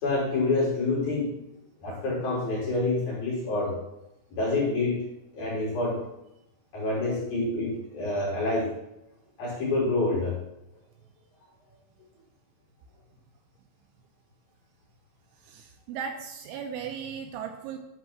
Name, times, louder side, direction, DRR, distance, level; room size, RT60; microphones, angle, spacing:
voice 1, 0.0-1.3 1.8-3.8 4.3-5.0 5.3-6.0 6.7-8.7 9.4-10.4, left 2 dB, 50° left, -6 dB, 5.1 m, -27 dB
voice 2, 15.4-17.8, right 7 dB, 80° right, 4 dB, 2.9 m, -37 dB
11.0 x 4.7 x 5.9 m, 0.88 s
omnidirectional pair, 5.8 m